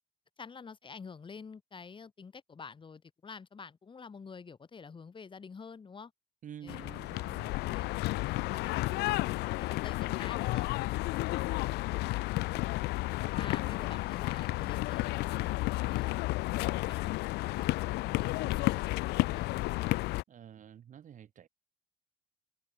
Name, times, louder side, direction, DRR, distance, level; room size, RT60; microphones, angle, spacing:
voice 1, 0.4-6.1 6.6-7.0 7.3-8.1 8.5-10.7 11.1-11.6 13.3-17.1 17.4-19.6, left 5 dB, 30° left, 3.6 m, -49 dB
voice 2, 6.4-7.6 20.3-21.5, right 9 dB, 50° right, 2.3 m, -49 dB
sound 1, 6.7-20.2, left 20 dB, 80° left, 0.4 m, -32 dB
cardioid pair, 110°, 17 cm